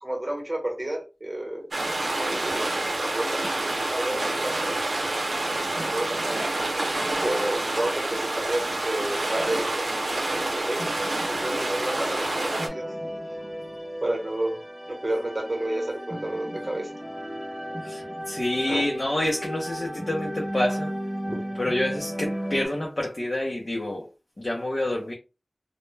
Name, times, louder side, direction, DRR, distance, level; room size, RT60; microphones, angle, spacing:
voice 1, 0.0-1.7 2.0-2.7 3.0-3.4 3.8-4.8 5.7-6.4 6.8-6.9 7.2-11.0 11.3-12.9 14.0-14.6 14.9-16.9 18.7-18.9 21.3-21.5, right 1 dB, 30° right, 1.0 m, -31 dB
sound 1, 1.7-12.7, right 2 dB, 80° right, 0.6 m, -28 dB
sound 2, 5.8-22.7, equal, 10° right, 0.8 m, -36 dB
voice 2, 17.8-20.9 21.6-24.1 24.4-25.1, left 1 dB, 35° left, 0.6 m, -28 dB
2.1 x 2.1 x 3.1 m
wide cardioid pair, 75°, 0 cm